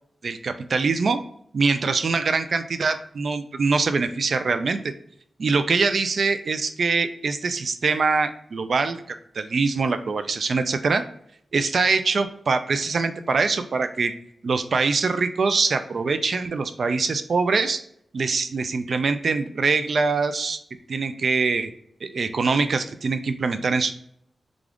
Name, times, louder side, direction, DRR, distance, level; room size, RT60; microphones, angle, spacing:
voice 1, 0.2-1.2 1.5-4.8 5.4-9.0 9.3-11.0 11.5-14.1 14.4-17.8 18.1-20.6 20.9-21.7 22.0-23.9, right 4 dB, 65° right, 9 dB, 0.4 m, -23 dB
3.6 x 2.4 x 3.4 m, 0.70 s
cardioid pair, 80°, 0 cm